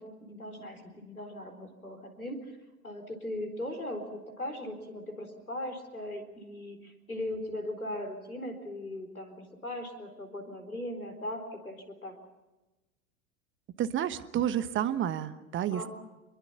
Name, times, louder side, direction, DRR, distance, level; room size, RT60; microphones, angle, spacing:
voice 1, 0.0-2.4 2.8-12.2 15.7-15.9, left 1 dB, 85° left, 6 dB, 4.2 m, -39 dB
voice 2, 13.8-15.9, right 10 dB, 30° right, 13 dB, 1.2 m, -30 dB
27.0 x 22.5 x 5.9 m, 1.1 s
figure-of-eight pair, 85°, 42 cm